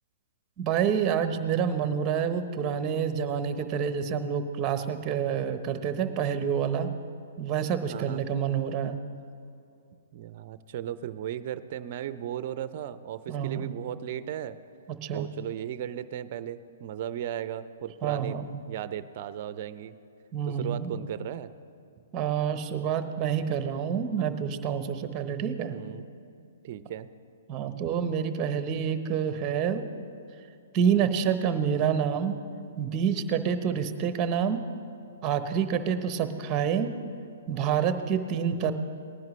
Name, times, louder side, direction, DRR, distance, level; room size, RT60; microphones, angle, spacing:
voice 1, 0.6-6.9 7.4-9.0 13.3-13.7 15.0-15.3 18.0-18.6 20.3-20.9 22.1-25.8 27.5-29.9 30.7-32.4 32.8-34.6 35.2-36.9 37.5-38.7, right 7 dB, 25° right, 9 dB, 0.9 m, -28 dB
voice 2, 7.9-8.2 10.1-14.6 15.1-19.9 20.5-21.5 25.7-26.1 26.4-27.1, right 11 dB, 50° right, 13 dB, 0.5 m, -36 dB
19.0 x 10.5 x 3.2 m, 2.6 s
hypercardioid pair, 130°, 0 cm